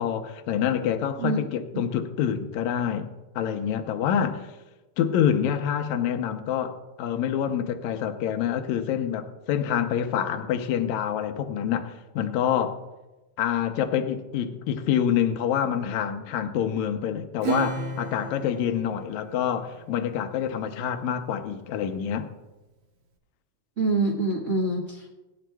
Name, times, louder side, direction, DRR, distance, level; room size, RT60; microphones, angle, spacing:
voice 1, 0.0-3.1 3.4-4.5 5.0-12.8 13.4-22.3, left 9 dB, 80° left, 7 dB, 2.1 m, -27 dB
Acoustic guitar / Strum, 17.4-20.3, right 5 dB, 60° right, 2.4 m, -34 dB
voice 2, 23.8-25.1, right 3 dB, 40° right, -3 dB, 1.1 m, -25 dB
21.5 x 10.0 x 2.3 m, 1.1 s
omnidirectional pair, 3.4 m